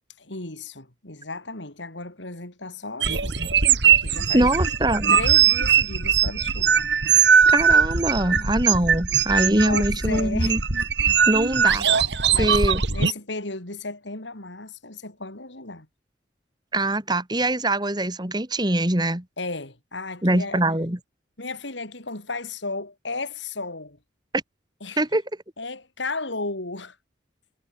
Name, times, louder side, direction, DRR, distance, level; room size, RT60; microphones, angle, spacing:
voice 1, 0.2-3.5 3.8-4.5 5.1-6.9 9.7-10.6 12.3-15.9 19.4-20.6 21.4-24.0 24.8-25.0 25.6-27.0, left 3 dB, 75° left, 3.9 m, -34 dB
sound 1, 3.0-13.1, right 7 dB, 65° right, 2.6 m, -20 dB
voice 2, 4.3-5.1 7.5-10.6 11.3-11.9 12.4-12.8 16.7-19.2 20.2-21.0 25.0-25.2, right 1 dB, 20° right, 2.2 m, -23 dB
head